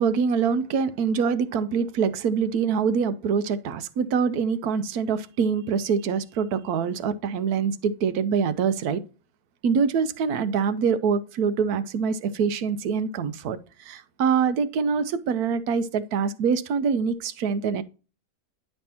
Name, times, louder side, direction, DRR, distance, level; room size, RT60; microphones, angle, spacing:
voice 1, 0.0-9.0 9.6-17.8, right 6 dB, 80° right, 1.2 m, -25 dB
10.5 x 5.4 x 2.8 m
omnidirectional pair, 1.6 m